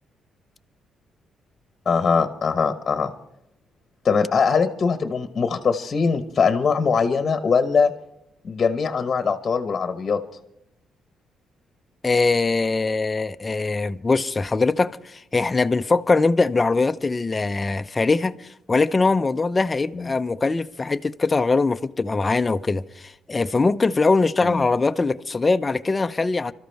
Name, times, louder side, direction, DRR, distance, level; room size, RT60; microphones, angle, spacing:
voice 1, 1.8-3.1 4.0-7.9 8.4-10.2 19.9-20.1 24.4-24.6, left 5 dB, 45° left, 1.1 m, -21 dB
voice 2, 12.0-26.5, left 3 dB, 25° left, 0.6 m, -22 dB
24.5 x 13.5 x 3.4 m
cardioid pair, 90°, 0 cm